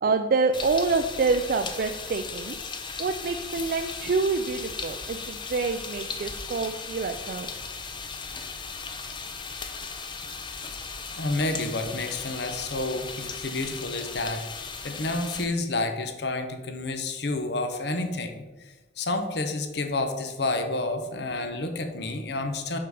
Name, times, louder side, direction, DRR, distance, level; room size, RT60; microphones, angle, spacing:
voice 1, 0.0-2.6 3.0-7.5, right 4 dB, 50° right, 6 dB, 0.4 m, -27 dB
sound 1, 0.5-15.4, left 5 dB, 25° left, 0.6 m, -37 dB
voice 2, 11.2-14.5 14.8-22.8, left 2 dB, 60° left, 7 dB, 0.8 m, -30 dB
6.6 x 5.8 x 4.7 m, 1.1 s
head